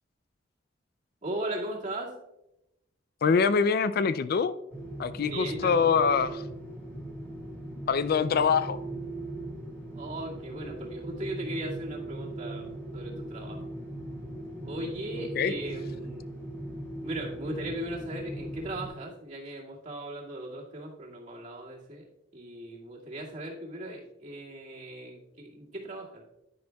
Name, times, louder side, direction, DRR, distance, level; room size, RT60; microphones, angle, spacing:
voice 1, 1.2-2.1 5.2-5.8 10.0-13.8 14.6-16.3 17.0-22.1 22.3-26.2, right 1 dB, 40° right, -4 dB, 2.2 m, -38 dB
voice 2, 3.2-4.5 5.0-6.4 7.9-8.8 15.3-15.5, left 6 dB, 50° left, 14 dB, 0.4 m, -24 dB
sound 1, 4.7-18.9, right 2 dB, 10° left, 3.7 m, -39 dB
10.5 x 10.5 x 2.3 m, 0.90 s
head